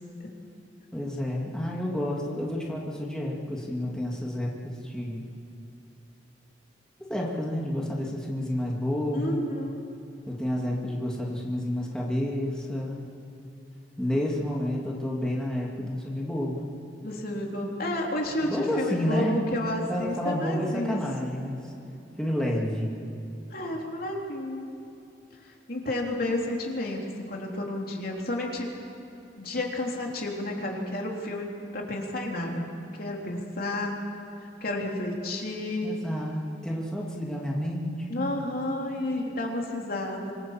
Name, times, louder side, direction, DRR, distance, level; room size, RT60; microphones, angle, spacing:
voice 1, 0.9-5.2 7.1-9.4 10.3-13.0 14.0-16.7 18.4-21.6 22.2-22.9 35.8-38.3, left 1 dB, 5° left, -3 dB, 2.6 m, -30 dB
voice 2, 9.1-9.9 17.0-21.3 23.5-24.7 25.7-28.7 29.4-32.7 33.0-33.9 34.6-35.9 38.1-40.3, left 1 dB, 55° left, 0 dB, 3.5 m, -31 dB
25.5 x 21.5 x 7.4 m, 3.0 s
head